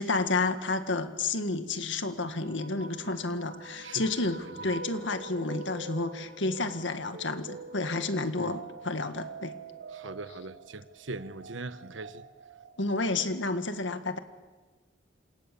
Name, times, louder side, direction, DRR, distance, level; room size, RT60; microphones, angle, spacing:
voice 1, 0.0-9.5 12.8-14.2, left 3 dB, 80° left, 1.9 m, -30 dB
sound 1, 2.1-13.1, right 3 dB, 65° right, 3.1 m, -45 dB
voice 2, 3.8-4.1 4.6-4.7 8.4-8.6 9.9-12.2, right 2 dB, 90° right, 1.2 m, -41 dB
27.5 x 27.5 x 7.1 m
head